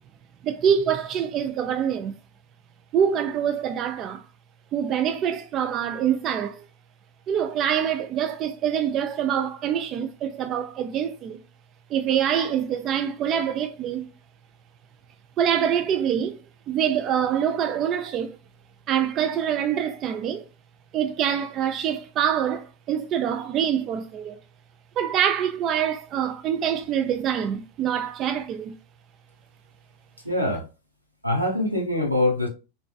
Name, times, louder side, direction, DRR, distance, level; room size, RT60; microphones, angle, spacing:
voice 1, 0.4-2.2 2.9-4.2 4.7-6.6 7.3-11.4 11.9-14.1 15.4-16.4 16.7-18.4 18.9-20.4 20.9-24.4 25.0-28.7, right 9 dB, 35° right, 0.3 m, -25 dB
voice 2, 30.2-30.7 31.2-32.5, left 1 dB, 90° right, 1.0 m, -23 dB
3.2 x 3.1 x 2.2 m
figure-of-eight pair, 90°, 0 cm